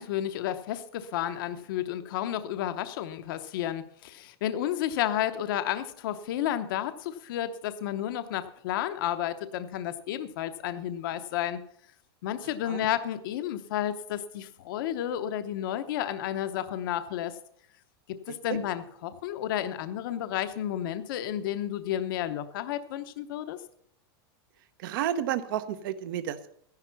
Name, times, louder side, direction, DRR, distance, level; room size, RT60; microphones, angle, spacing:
voice 1, 0.0-11.6 12.2-17.4 18.1-23.6, left 11 dB, 55° left, 10 dB, 0.8 m, -32 dB
voice 2, 24.8-26.6, right 10 dB, 55° right, 12 dB, 0.8 m, -31 dB
13.5 x 10.5 x 5.7 m, 0.69 s
supercardioid pair, 175°, 13 cm